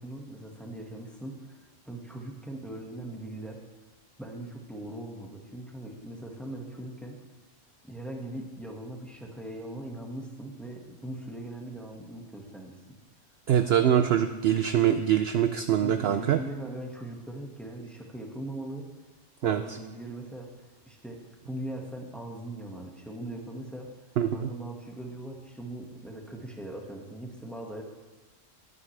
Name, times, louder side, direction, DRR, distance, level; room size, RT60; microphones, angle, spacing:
voice 1, 0.0-3.6 4.2-7.2 7.8-13.0 13.6-14.4 15.8-18.9 19.4-21.2 21.5-23.9 24.3-27.8, right 1 dB, ahead, 0 dB, 1.6 m, -40 dB
voice 2, 13.5-16.4 19.4-19.6 24.2-24.5, right 10 dB, 65° right, 9 dB, 0.7 m, -24 dB
18.5 x 9.6 x 3.3 m, 1.2 s
omnidirectional pair, 1.3 m